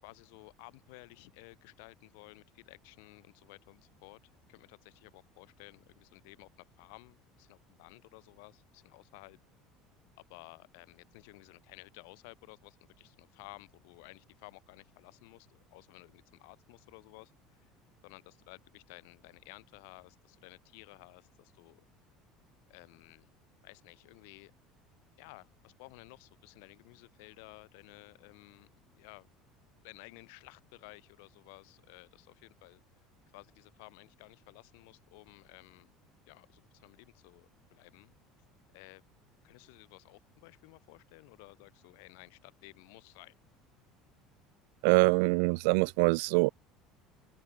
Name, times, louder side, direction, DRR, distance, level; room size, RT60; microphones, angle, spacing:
voice 1, 0.0-4.2 4.5-9.4 10.2-17.7 18.0-21.8 22.7-23.3 23.6-24.5 25.2-28.7 29.0-29.3 29.8-32.8 33.3-35.9 36.3-38.1 38.7-39.0 39.4-43.3, left 31 dB, 80° left, 6.6 m, -55 dB
voice 2, 44.8-46.5, right 32 dB, 80° right, 0.9 m, -24 dB
open air
cardioid pair, 170°, 0 cm